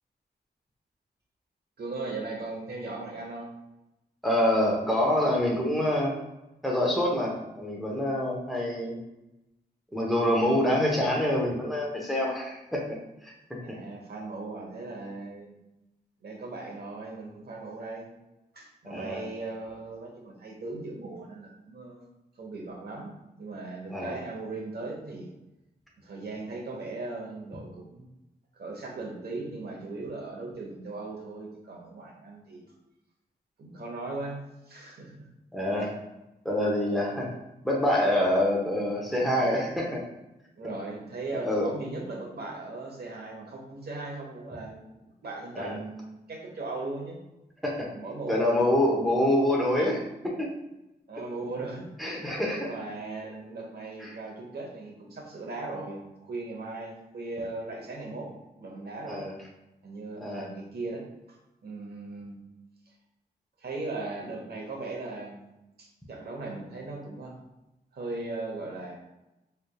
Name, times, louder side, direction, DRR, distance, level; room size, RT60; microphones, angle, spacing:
voice 1, 1.8-3.5 13.6-15.6 16.2-18.1 18.5-22.1 22.4-25.3 26.0-28.1 28.5-32.6 33.6-34.4 34.7-35.3 35.8-35.9 40.6-47.2 47.9-48.7 51.1-51.9 52.6-58.3 58.6-59.3 59.8-61.4 61.6-62.4 63.6-65.4 65.8-67.4 67.9-69.0, right 3 dB, 65° right, 0 dB, 1.0 m, -38 dB
voice 2, 4.2-6.2 6.6-9.0 9.9-12.8 13.2-13.6 18.9-19.2 23.9-24.2 35.5-35.9 36.4-37.3 37.6-40.0 41.4-41.7 45.5-45.7 47.6-47.9 48.3-50.5 52.0-52.7 54.0-54.1 59.1-59.3 60.2-60.5, left 1 dB, ahead, -2 dB, 1.0 m, -26 dB
4.0 x 3.3 x 2.3 m, 0.94 s
wide cardioid pair, 85°, 18 cm